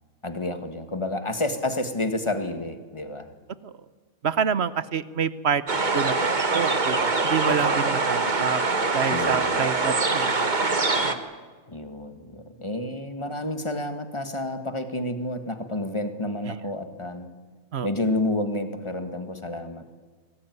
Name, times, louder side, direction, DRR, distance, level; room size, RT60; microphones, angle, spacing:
voice 1, 0.2-3.3 7.5-7.9 9.1-9.7 11.7-17.3 17.8-19.8, left 1 dB, 20° left, 9 dB, 1.7 m, -30 dB
voice 2, 4.2-5.6 5.9-6.1 6.5-8.6 8.9-10.6 11.0-11.2 16.5-16.6 17.7-17.9, right 7 dB, 50° right, 16 dB, 1.0 m, -27 dB
sound 1, 5.7-11.1, right 3 dB, 30° right, 1.5 m, -24 dB
25.0 x 19.0 x 9.4 m, 1.5 s
omnidirectional pair, 1.6 m